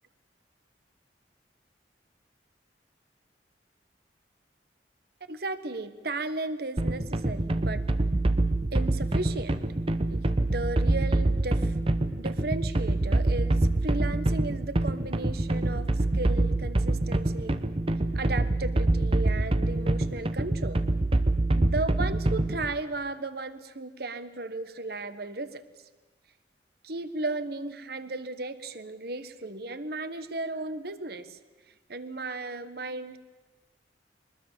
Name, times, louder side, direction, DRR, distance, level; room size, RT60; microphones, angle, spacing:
voice 1, 5.3-7.8 8.7-9.6 10.1-11.8 12.2-17.6 18.1-20.8 21.6-25.7 26.8-31.4 31.9-33.2, right 2 dB, 60° right, 12 dB, 1.3 m, -35 dB
sound 1, 6.8-22.7, right 2 dB, 30° right, 0.9 m, -26 dB
23.5 x 20.5 x 7.4 m, 1.2 s
head